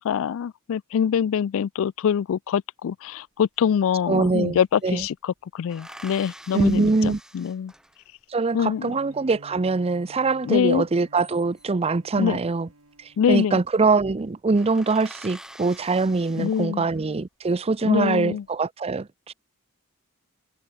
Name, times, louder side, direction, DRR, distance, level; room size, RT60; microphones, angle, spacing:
voice 1, 0.0-7.7 8.5-8.9 10.4-10.9 12.2-12.4 13.2-13.6 16.4-16.9 17.8-18.4, left 8 dB, 65° left, 0.3 m, -24 dB
sound 1, 3.6-3.7 3.9-4.9 5.7-8.2 10.9-11.9 13.0-13.4 13.7-13.8 14.2-14.3 14.5-17.1 17.7-18.3, right 1 dB, 5° right, 2.3 m, -46 dB
voice 2, 4.1-4.6 4.8-5.0 6.5-7.2 8.3-12.7 13.0-19.3, right 3 dB, 25° right, 0.5 m, -23 dB
Bowed string instrument, 8.4-13.9, right 1 dB, 75° right, 4.5 m, -52 dB
open air
head